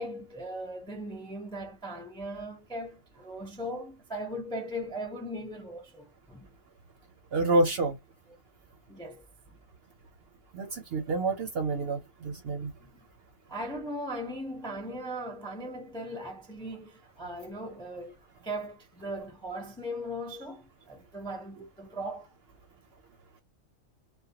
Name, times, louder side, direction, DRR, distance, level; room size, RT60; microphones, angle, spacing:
voice 1, 0.0-6.5 8.9-9.2 12.8-12.9 13.5-18.2 18.4-22.3, equal, 5° left, 0.4 m, -38 dB
voice 2, 7.3-8.0 10.5-12.7, right 2 dB, 60° right, 0.7 m, -28 dB
2.2 x 2.1 x 2.7 m
omnidirectional pair, 1.4 m